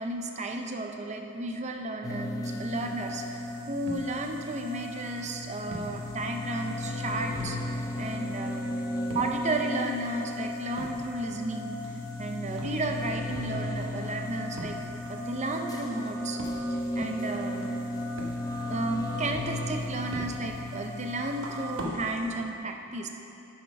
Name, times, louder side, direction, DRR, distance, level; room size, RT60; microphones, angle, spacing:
voice 1, 0.0-3.4 3.7-7.6 8.0-8.8 9.1-11.8 12.2-14.8 15.1-16.4 16.7-17.8 18.7-23.1, right 2 dB, 30° right, 3 dB, 0.6 m, -33 dB
sound 1, 2.0-21.9, left 1 dB, 15° left, 0.7 m, -35 dB
sound 2, 2.6-22.4, right 1 dB, 60° right, 1.1 m, -46 dB
11.0 x 5.8 x 5.3 m, 2.9 s
head